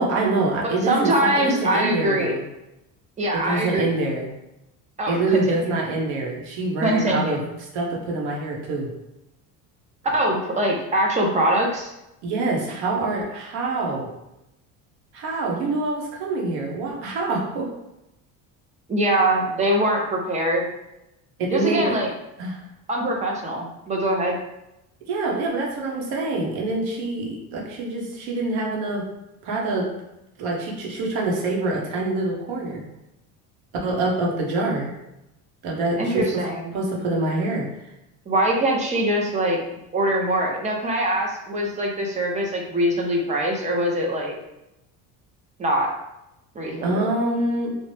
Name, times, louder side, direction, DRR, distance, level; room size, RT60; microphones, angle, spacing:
voice 1, 0.0-2.5 3.3-4.3 5.1-7.4 7.7-8.9 12.2-14.1 15.1-17.7 21.4-21.9 22.4-22.6 25.1-29.0 29.4-29.9 30.4-32.8 33.8-34.9 35.6-36.4 36.7-37.7 46.8-47.8, right 2 dB, 75° right, -1 dB, 0.9 m, -25 dB
voice 2, 0.6-2.4 3.2-4.0 5.0-5.7 6.8-7.5 10.1-11.9 18.9-20.7 21.5-22.1 22.9-24.4 36.0-36.8 38.3-39.6 39.9-44.3 45.6-45.9 46.6-47.1, right 1 dB, 20° right, 0 dB, 0.4 m, -23 dB
2.8 x 2.0 x 3.1 m, 0.89 s
cardioid pair, 140°, 38 cm